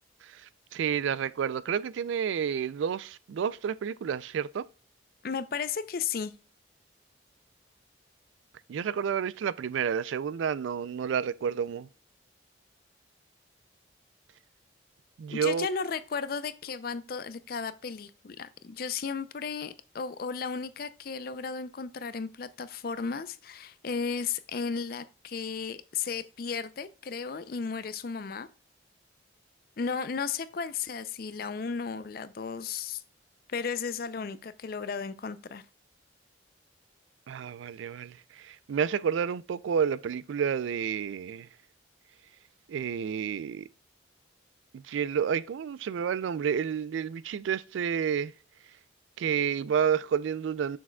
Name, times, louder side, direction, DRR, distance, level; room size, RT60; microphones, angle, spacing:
voice 1, 0.7-4.6 8.7-11.9 15.2-15.7 37.3-41.5 42.7-43.7 44.7-48.3 49.2-50.8, right 7 dB, 75° right, 0.3 m, -30 dB
voice 2, 5.2-6.3 15.3-28.5 29.8-33.0 33.5-35.6, left 5 dB, 50° left, 0.4 m, -34 dB
7.2 x 6.0 x 2.2 m
head